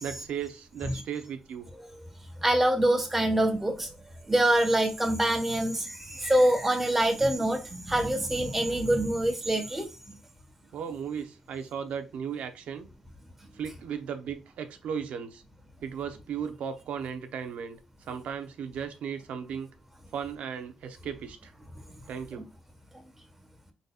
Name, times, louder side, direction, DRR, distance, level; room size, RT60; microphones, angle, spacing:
voice 1, 0.0-1.7 10.7-12.9 13.5-15.4 15.8-17.8 18.1-19.7 20.1-21.5 22.1-22.4, right 7 dB, 85° right, 0.8 m, -36 dB
voice 2, 2.4-3.9 4.3-9.9, right 1 dB, 10° right, 1.3 m, -25 dB
5.2 x 4.0 x 2.4 m
cardioid pair, 130°, 2 cm